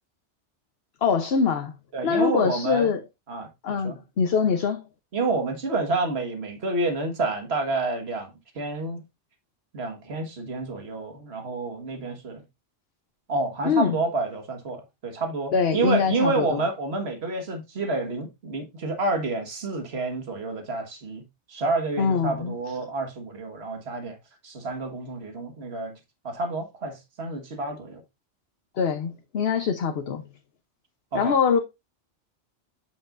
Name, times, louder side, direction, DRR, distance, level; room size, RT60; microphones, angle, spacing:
voice 1, 1.0-1.8 2.0-3.0 3.6-4.8 13.6-14.0 15.5-16.6 22.0-22.7 28.8-30.2 31.1-31.6, left 6 dB, 65° left, 1.0 m, -23 dB
voice 2, 1.9-2.9 3.3-4.0 5.1-9.0 9.7-12.4 13.3-24.2 24.4-26.0 26.2-28.0 31.1-31.3, right 3 dB, 65° right, 1.8 m, -29 dB
8.5 x 7.0 x 2.5 m
omnidirectional pair, 1.2 m